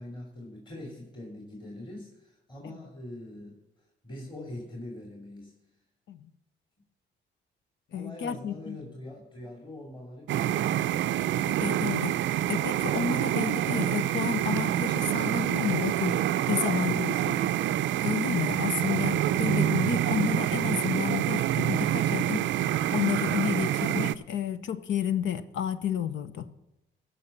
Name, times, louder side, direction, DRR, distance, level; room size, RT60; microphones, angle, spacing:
voice 1, 0.0-3.6 4.0-5.5 7.9-11.1 16.7-18.0, left 1 dB, 25° left, -1 dB, 2.8 m, -43 dB
voice 2, 7.9-8.8 11.5-12.2 12.5-16.2 16.5-17.4 18.0-22.5 22.9-26.5, left 8 dB, 70° left, 12 dB, 0.8 m, -31 dB
sound 1, 10.3-24.1, right 12 dB, 70° right, 0.5 m, -27 dB
15.5 x 5.5 x 7.1 m, 0.94 s
cardioid pair, 90°, 20 cm